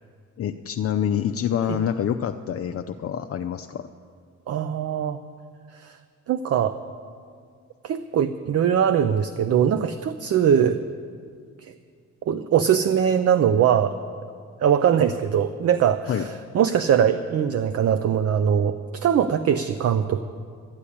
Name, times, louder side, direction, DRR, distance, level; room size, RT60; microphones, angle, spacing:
voice 1, 0.4-3.9 16.1-16.3, left 9 dB, 50° left, 6 dB, 0.6 m, -26 dB
voice 2, 4.5-5.2 5.7-6.0 6.3-6.8 7.8-10.8 11.6-11.7 12.3-14.0 14.6-20.2, right 8 dB, 55° right, 10 dB, 0.6 m, -21 dB
13.0 x 8.5 x 9.9 m, 2.2 s
cardioid pair, 90°, 30 cm